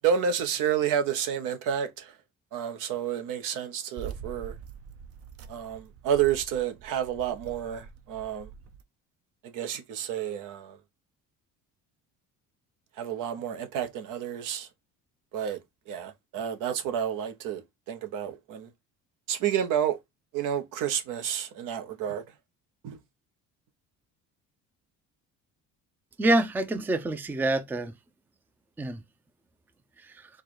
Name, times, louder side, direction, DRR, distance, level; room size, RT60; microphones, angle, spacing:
voice 1, 0.0-2.2 2.5-4.5 5.5-8.5 9.4-10.8 13.0-14.7 15.3-15.6 15.9-18.7 19.3-20.0 20.3-22.2 22.8-23.0, right 8 dB, 75° right, 1.0 m, -30 dB
sound 1, 4.0-8.8, right 8 dB, 45° right, 0.6 m, -44 dB
voice 2, 26.2-27.9 28.8-29.0 30.0-30.3, right 1 dB, 5° right, 0.4 m, -26 dB
4.6 x 2.3 x 4.6 m
cardioid pair, 135°, 32 cm